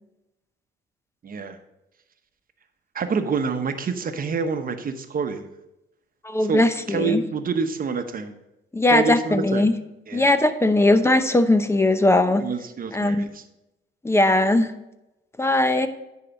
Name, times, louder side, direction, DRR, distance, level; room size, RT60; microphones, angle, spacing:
voice 1, 1.2-1.6 2.9-5.4 6.5-6.6 6.9-8.3 8.9-9.7 10.1-10.3 12.4-13.4, right 5 dB, 45° right, 8 dB, 1.0 m, -27 dB
voice 2, 6.2-7.2 8.7-9.7 10.1-12.4 12.9-13.3 14.0-14.7 15.4-15.9, left 2 dB, 15° left, 10 dB, 0.7 m, -19 dB
10.0 x 4.8 x 5.4 m, 0.93 s
cardioid pair, 90°, 20 cm